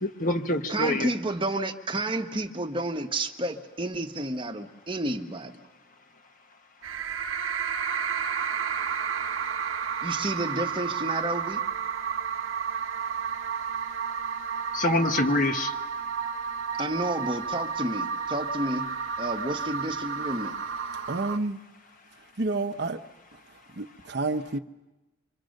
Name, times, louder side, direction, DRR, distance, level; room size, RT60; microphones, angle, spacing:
voice 1, 0.0-1.1 14.7-15.7, left 1 dB, 45° left, 5 dB, 1.3 m, -25 dB
voice 2, 0.7-5.6 10.0-11.6 16.8-18.9 19.2-20.5, right 1 dB, 25° right, 4 dB, 1.1 m, -30 dB
sound 1, 6.8-21.4, right 6 dB, 85° right, 0.9 m, -31 dB
voice 3, 21.1-21.6 22.4-23.0 23.8-24.6, right 3 dB, 60° right, 10 dB, 0.8 m, -29 dB
25.5 x 25.0 x 6.5 m, 1.1 s
head